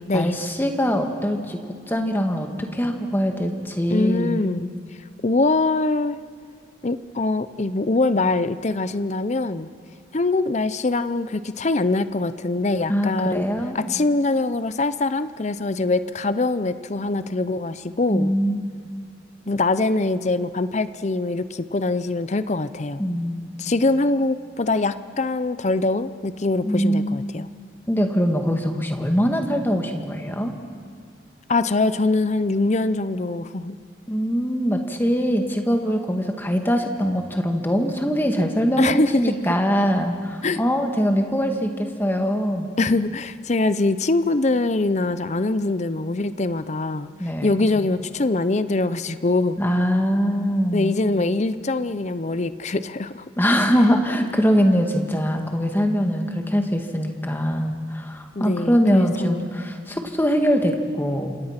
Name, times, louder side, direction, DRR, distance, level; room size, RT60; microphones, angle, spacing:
voice 1, 0.1-1.6 1.9-4.4 12.9-13.8 18.1-18.6 23.0-23.5 26.6-27.4 27.9-30.5 34.1-42.7 47.2-47.6 49.6-51.0 53.4-61.4, equal, 10° left, 4 dB, 1.8 m, -22 dB
voice 2, 3.9-4.7 5.2-6.2 6.8-9.7 10.1-13.5 13.7-18.3 19.5-23.0 23.6-27.5 31.5-33.8 38.8-39.2 40.4-40.6 42.8-47.1 47.4-49.6 50.7-53.2 58.4-59.4, left 2 dB, 40° left, 13 dB, 0.6 m, -23 dB
27.5 x 26.5 x 5.9 m, 2.1 s
head